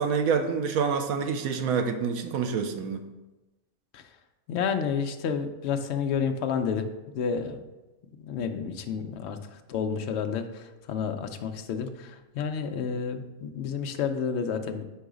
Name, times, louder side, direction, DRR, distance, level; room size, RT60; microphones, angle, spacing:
voice 1, 0.0-3.1, right 6 dB, 85° right, 7 dB, 1.1 m, -27 dB
voice 2, 4.5-7.6 8.2-14.8, left 6 dB, 65° left, 7 dB, 0.7 m, -30 dB
4.7 x 4.6 x 5.0 m, 1.1 s
omnidirectional pair, 1.5 m